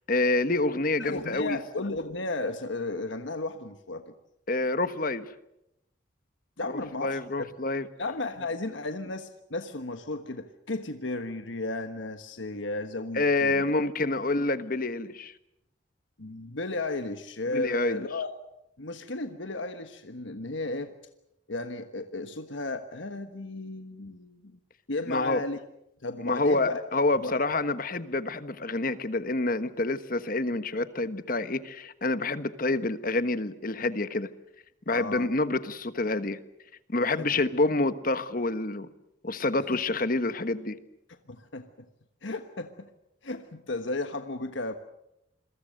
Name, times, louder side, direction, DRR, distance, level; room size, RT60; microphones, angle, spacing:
voice 1, 0.1-1.6 4.5-5.3 6.7-7.9 13.1-15.3 17.5-18.0 25.1-25.4 26.2-34.3 34.9-36.4 36.9-38.9 39.2-40.8, left 2 dB, 45° left, 12 dB, 1.3 m, -27 dB
voice 2, 1.0-4.1 6.6-7.5 8.0-13.6 16.2-18.3 18.8-20.9 21.5-24.6 24.9-25.6 26.0-26.8 27.2-27.3 34.9-35.3 37.2-37.3 41.3-41.7 42.2-42.9 43.2-44.7, left 2 dB, 75° left, 8 dB, 1.4 m, -34 dB
27.5 x 23.0 x 6.6 m, 0.83 s
head